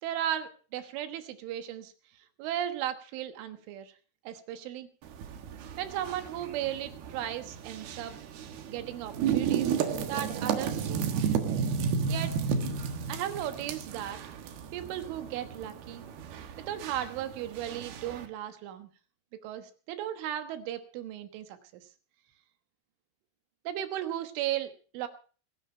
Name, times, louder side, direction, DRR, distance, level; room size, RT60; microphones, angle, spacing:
voice 1, 0.0-1.9 2.4-3.9 4.3-4.9 5.8-8.1 8.7-9.8 10.1-11.2 12.1-12.4 13.1-14.2 14.7-16.0 16.7-18.9 19.4-21.9 23.7-25.1, right 11 dB, 80° right, 8 dB, 3.8 m, -36 dB
sound 1, 5.0-18.3, right 7 dB, 65° right, 3.1 m, -33 dB
23.0 x 11.0 x 4.4 m, 0.39 s
omnidirectional pair, 5.5 m